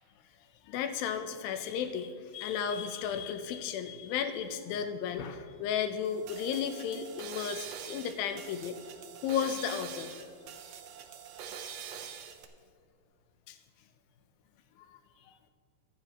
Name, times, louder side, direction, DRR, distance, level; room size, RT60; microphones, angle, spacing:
voice 1, 0.7-8.8 9.2-10.2 13.5-13.6, left 8 dB, 80° left, 8 dB, 2.5 m, -34 dB
sound 1, 6.0-12.4, right 8 dB, 80° right, 1.5 m, -45 dB
23.0 x 9.9 x 3.0 m, 2.1 s
omnidirectional pair, 4.2 m